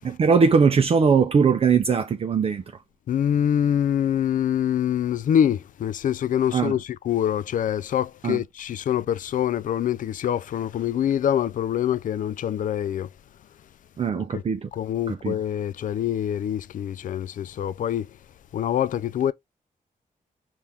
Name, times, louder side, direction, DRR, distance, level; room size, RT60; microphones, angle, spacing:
voice 1, 0.0-2.6 6.5-6.8 8.2-8.4 14.0-14.7 15.1-15.4, right 5 dB, 40° right, 0.5 m, -20 dB
voice 2, 3.1-13.1 14.3-14.4 14.7-18.1 18.5-19.3, left 10 dB, 70° left, 0.4 m, -25 dB
5.7 x 2.5 x 3.4 m
wide cardioid pair, 175°, 14 cm